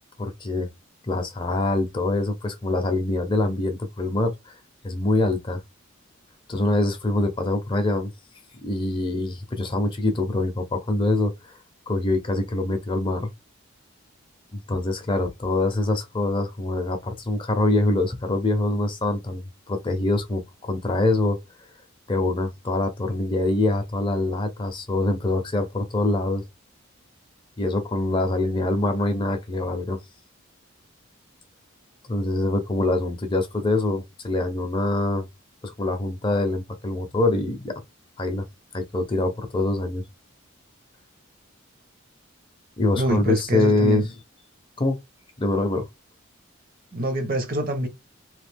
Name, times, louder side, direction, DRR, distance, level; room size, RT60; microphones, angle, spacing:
voice 1, 0.2-0.7 1.1-4.5 4.8-5.6 6.5-8.1 8.6-11.3 11.9-13.3 14.5-21.4 22.1-26.4 27.6-30.0 32.1-35.3 35.6-37.8 38.2-38.4 38.7-40.0 42.8-44.1 44.8-45.0 45.4-45.8, left 2 dB, 25° left, 0.5 m, -24 dB
voice 2, 42.9-44.0 46.9-47.9, right 1 dB, 45° right, 0.7 m, -25 dB
3.0 x 2.3 x 3.3 m
head